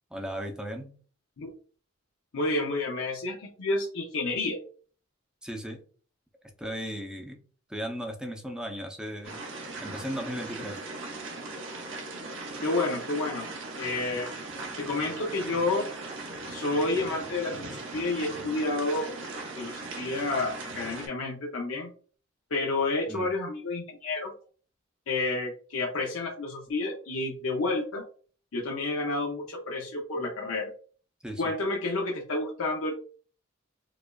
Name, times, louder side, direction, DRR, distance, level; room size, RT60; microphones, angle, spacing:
voice 1, 0.1-1.0 5.4-5.8 6.6-7.4 7.7-9.4 9.8-10.8 23.1-23.3 31.2-31.5, equal, 5° right, 3 dB, 0.5 m, -36 dB
voice 2, 2.3-4.6 12.6-13.5 13.8-14.5 14.8-15.9 16.5-19.2 19.6-21.9 22.5-24.3 25.1-28.0 28.5-30.7 31.4-32.9, left 2 dB, 80° left, 0 dB, 0.6 m, -30 dB
sound 1, 9.2-21.1, right 2 dB, 65° right, 1.0 m, -39 dB
4.8 x 2.4 x 2.3 m, 0.41 s
head